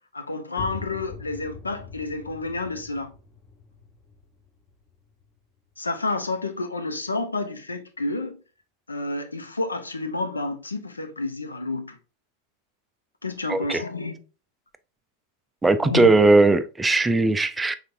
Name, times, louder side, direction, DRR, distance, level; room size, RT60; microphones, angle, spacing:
voice 1, 0.1-3.1 5.8-8.4 8.9-12.0 13.2-14.2 15.8-16.1, left 3 dB, 80° left, 0.6 m, -30 dB
sound 1, 0.6-6.1, left 4 dB, 20° left, 0.8 m, -43 dB
voice 2, 13.5-13.8 15.6-17.7, right 2 dB, 10° right, 0.3 m, -18 dB
5.2 x 3.5 x 2.5 m
figure-of-eight pair, 90°, 0 cm